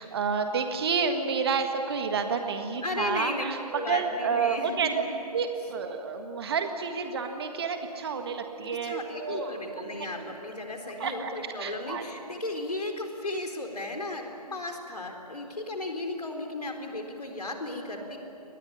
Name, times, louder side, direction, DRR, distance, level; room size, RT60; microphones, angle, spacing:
voice 1, 0.0-3.6 3.9-5.0 5.3-10.3 11.0-11.3 11.6-12.0, right 5 dB, 40° right, 6 dB, 1.8 m, -30 dB
voice 2, 2.8-5.1 8.8-18.2, left 2 dB, 75° left, 3 dB, 4.0 m, -35 dB
23.5 x 20.0 x 9.9 m, 2.9 s
figure-of-eight pair, 145°, 20 cm